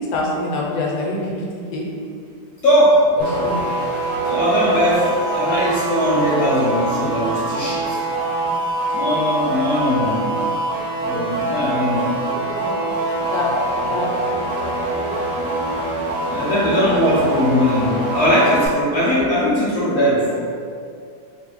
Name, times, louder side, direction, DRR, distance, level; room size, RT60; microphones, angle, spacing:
voice 1, 0.0-1.4 1.7-1.8 3.2-3.5 11.9-12.9 13.2-15.3, left 2 dB, 90° left, -3 dB, 1.4 m, -26 dB
voice 2, 2.6-3.0 4.2-8.0 8.9-10.3 11.0-12.1 16.3-20.4, equal, 70° left, -9 dB, 0.7 m, -19 dB
sound 1, 3.2-18.7, right 2 dB, 25° right, 0.7 m, -24 dB
3.1 x 2.6 x 2.9 m, 2.3 s
omnidirectional pair, 2.1 m